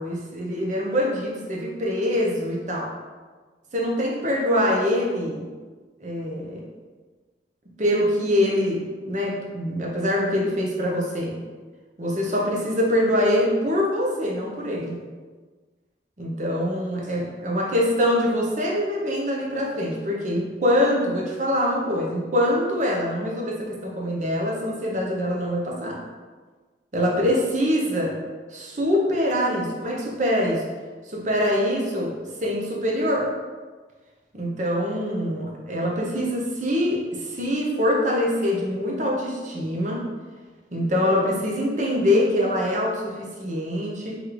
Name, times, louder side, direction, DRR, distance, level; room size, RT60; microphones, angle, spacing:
voice 1, 0.0-2.9 3.7-5.4 6.0-6.6 7.8-11.4 12.0-15.0 16.2-26.0 26.9-28.2 28.5-30.6 31.1-32.1 32.4-33.3 34.3-40.1 40.7-44.2, left 1 dB, 45° right, -2 dB, 0.7 m, -24 dB
3.2 x 3.1 x 3.8 m, 1.4 s
head